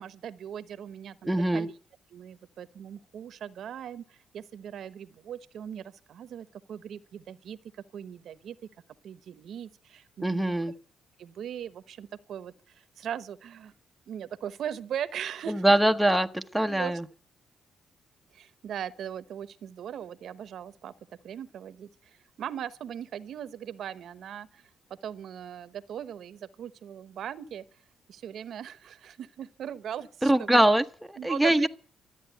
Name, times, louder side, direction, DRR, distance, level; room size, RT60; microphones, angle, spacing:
voice 1, 0.0-1.7 2.1-8.6 9.0-10.6 11.2-13.7 14.1-15.8 16.7-16.9 18.3-20.9 21.2-24.7 25.0-27.6 28.1-30.6 31.2-31.7, right 9 dB, 65° right, 1.0 m, -39 dB
voice 2, 1.3-1.7 10.2-10.7 15.5-17.0 30.2-31.7, right 1 dB, 5° right, 1.0 m, -23 dB
13.5 x 9.2 x 9.0 m
cardioid pair, 90°, 0 cm